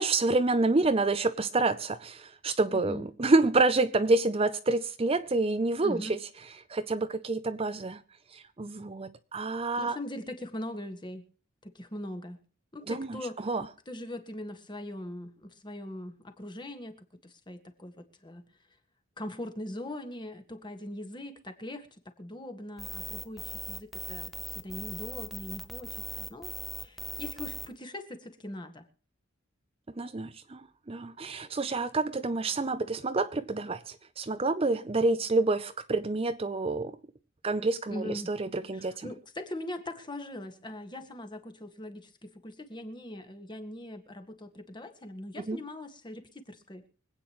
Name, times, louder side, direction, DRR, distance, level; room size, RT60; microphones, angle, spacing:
voice 1, 0.0-6.2 6.7-8.0 8.3-10.0 12.9-13.7 30.0-37.0 37.4-39.1 45.4-45.6, right 3 dB, 30° right, 0.6 m, -28 dB
voice 2, 2.7-3.1 5.8-6.1 9.8-11.3 11.6-12.4 12.7-13.5 13.9-18.4 19.2-26.5 26.8-28.9 37.9-38.3 38.7-46.8, left 1 dB, 25° left, 1.8 m, -41 dB
sound 1, 22.8-27.7, equal, ahead, 0.8 m, -39 dB
25.0 x 9.0 x 3.1 m
head